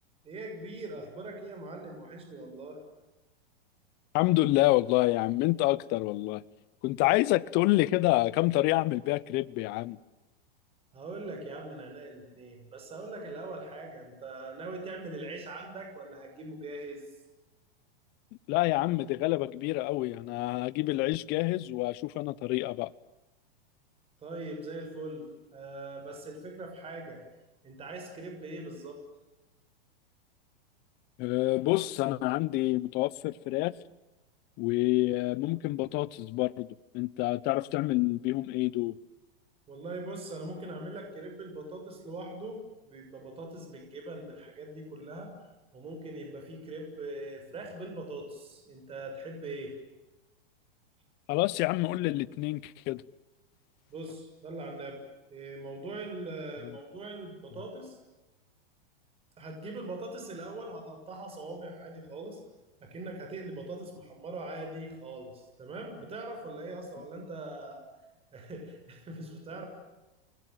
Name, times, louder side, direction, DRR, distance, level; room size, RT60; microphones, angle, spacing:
voice 1, 0.2-2.8 10.9-17.2 24.2-27.2 27.6-29.0 39.7-45.3 45.7-49.7 53.9-55.0 55.3-58.0 59.4-62.4 62.8-67.8 68.3-69.7, right 2 dB, 20° right, 6.7 m, -41 dB
voice 2, 4.1-6.4 6.8-10.0 18.5-22.9 31.2-33.7 34.6-36.7 36.9-38.9 51.3-53.0, left 19 dB, 35° left, 1.0 m, -27 dB
29.0 x 21.5 x 9.3 m
supercardioid pair, 145°, 29 cm